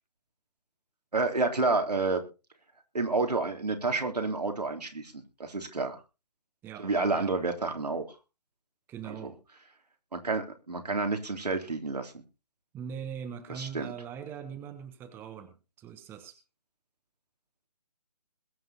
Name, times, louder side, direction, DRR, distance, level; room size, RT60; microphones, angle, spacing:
voice 1, 1.1-2.2 2.9-6.0 6.8-8.0 9.0-9.3 10.1-12.1 13.5-13.9, right 3 dB, 80° right, 4 dB, 3.4 m, -29 dB
voice 2, 8.9-9.3 12.7-16.4, right 7 dB, 10° right, 9 dB, 1.2 m, -41 dB
21.5 x 7.6 x 4.2 m, 0.31 s
figure-of-eight pair, 145°, 20 cm